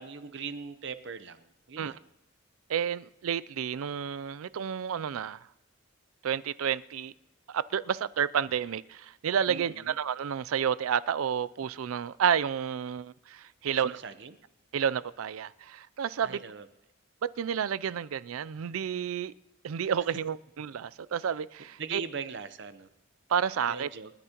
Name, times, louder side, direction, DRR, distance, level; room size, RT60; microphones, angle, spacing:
voice 1, 0.0-2.0 9.5-9.9 13.7-14.4 16.2-16.7 21.8-22.9 23.7-24.1, right 5 dB, 60° right, 0.7 m, -40 dB
voice 2, 2.7-5.4 6.2-7.1 7.5-13.9 14.7-16.4 17.2-19.3 19.6-22.0 23.3-23.9, right 8 dB, 90° right, 0.4 m, -30 dB
29.0 x 10.0 x 2.9 m
head